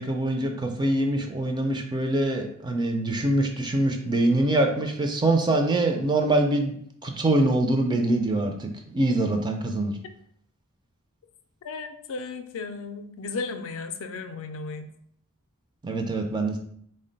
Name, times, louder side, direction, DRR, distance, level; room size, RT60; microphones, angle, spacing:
voice 1, 0.0-6.8 7.0-9.9 15.8-16.6, right 2 dB, 20° right, 4 dB, 0.4 m, -24 dB
voice 2, 11.6-14.9, left 4 dB, 65° left, 7 dB, 0.4 m, -35 dB
3.7 x 2.1 x 3.8 m, 0.66 s
head